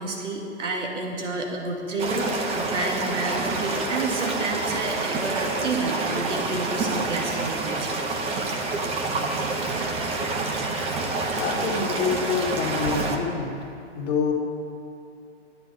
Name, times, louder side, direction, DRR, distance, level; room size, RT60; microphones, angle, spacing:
voice 1, 0.0-8.0, right 2 dB, 80° right, 0 dB, 2.1 m, -30 dB
sound 1, 2.0-13.2, right 3 dB, 15° right, 0.9 m, -27 dB
voice 2, 10.8-13.6 13.9-14.3, left 5 dB, 25° left, -2 dB, 2.0 m, -27 dB
11.5 x 9.4 x 5.2 m, 2.6 s
hypercardioid pair, 130°, 36 cm